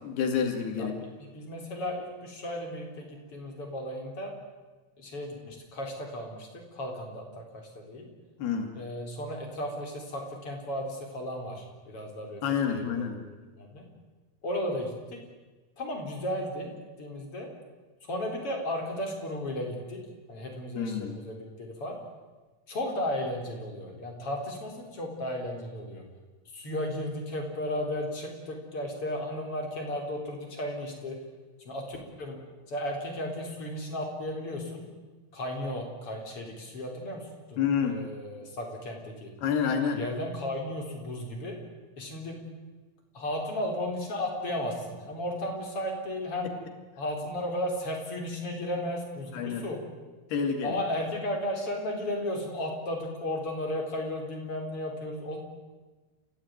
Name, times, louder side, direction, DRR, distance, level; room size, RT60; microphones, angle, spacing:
voice 1, 0.0-1.0 8.4-8.7 12.4-13.2 20.8-21.1 37.6-38.0 39.4-40.0 46.4-46.5 49.3-49.7 50.3-50.8, left 7 dB, 90° left, 5 dB, 4.5 m, -28 dB
voice 2, 1.3-4.3 5.0-8.1 8.7-12.4 12.7-13.0 13.5-13.8 14.4-15.2 15.8-16.7 17.0-17.5 18.0-20.0 20.3-21.9 22.7-26.0 26.5-31.1 31.6-32.4 32.7-34.8 35.3-39.3 39.9-41.5 42.0-42.4 43.1-46.5 47.0-49.8 50.6-55.4, left 1 dB, 35° left, 2 dB, 4.8 m, -34 dB
29.0 x 16.0 x 9.5 m, 1.3 s
omnidirectional pair, 4.4 m